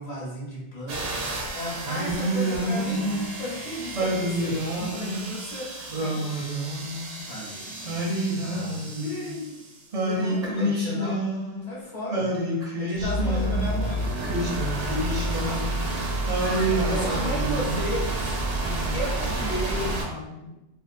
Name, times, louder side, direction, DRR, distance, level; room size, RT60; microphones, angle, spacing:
voice 1, 0.0-5.7 7.3-8.9 10.1-11.2 11.6-12.3 12.7-14.0 15.0-15.7 16.9-18.4 18.9-19.9, equal, 40° left, -7 dB, 0.9 m, -34 dB
sound 1, 0.9-9.9 12.9-20.0, right 1 dB, 90° right, 0.9 m, -31 dB
Singing, 1.8-3.3 3.9-5.3 5.9-7.2 7.8-9.4 9.9-11.7 12.1-13.7 14.2-15.9 16.3-17.9, right 1 dB, 45° right, 0.5 m, -28 dB
voice 2, 1.9-3.4 6.0-6.6 7.2-7.3 7.6-8.3 9.0-9.6 10.1-11.2 14.9-15.2 15.8-16.0 16.4-17.2 18.6-19.3 19.7-20.6, left 2 dB, 85° left, -7 dB, 1.0 m, -40 dB
2.4 x 2.3 x 2.4 m, 0.91 s
omnidirectional pair, 1.1 m